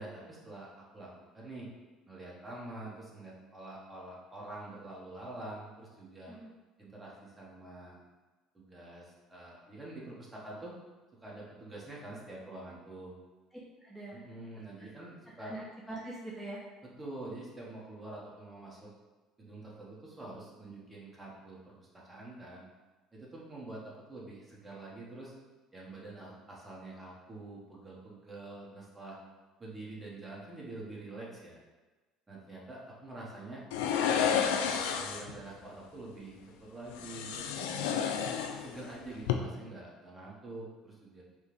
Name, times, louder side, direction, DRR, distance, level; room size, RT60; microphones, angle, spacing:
voice 1, 0.0-1.7 2.0-6.3 6.8-8.0 8.5-10.7 11.2-13.2 14.1-15.6 17.0-18.9 19.4-22.7 23.1-25.3 25.7-29.2 29.6-31.6 32.3-33.6 34.2-37.9 38.6-41.2, right 2 dB, 20° right, -4 dB, 1.5 m, -46 dB
voice 2, 13.8-14.3 15.4-16.6, right 2 dB, 5° left, -6 dB, 0.9 m, -43 dB
sound 1, 33.7-35.4 36.9-38.9 39.2-39.3, left 8 dB, 80° left, 0.4 m, -31 dB
5.2 x 2.5 x 3.4 m, 1.2 s
hypercardioid pair, 70°, 0 cm